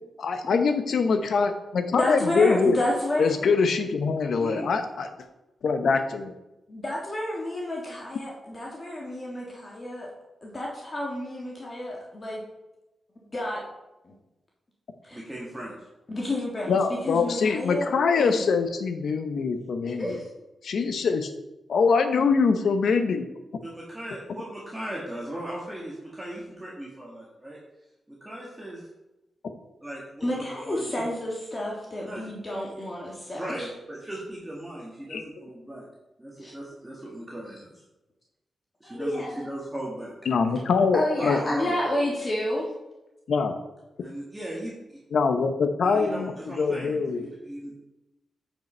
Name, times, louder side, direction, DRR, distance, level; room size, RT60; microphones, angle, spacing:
voice 1, 0.2-2.8 3.2-5.1 5.6-6.3 16.7-20.1 20.6-21.3 21.7-23.2 35.1-35.2 40.3-41.4 43.3-43.5 45.1-46.3 46.6-47.2, left 5 dB, 75° left, 8 dB, 0.9 m, -23 dB
voice 2, 1.9-3.6 6.7-10.1 10.4-12.4 13.1-13.6 15.1-15.2 16.1-18.4 19.8-20.3 30.2-33.7 36.4-36.5 38.8-39.5 40.9-42.7, left 1 dB, 30° left, -3 dB, 1.7 m, -30 dB
voice 3, 15.1-15.7 23.6-27.6 28.2-28.8 29.8-30.9 32.0-32.3 32.7-32.8 33.3-35.8 36.2-37.8 38.8-40.1 41.1-41.7 44.0-44.7 45.8-47.8, right 1 dB, 15° right, -5 dB, 1.8 m, -37 dB
9.3 x 5.2 x 4.4 m, 0.96 s
wide cardioid pair, 105°, 0 cm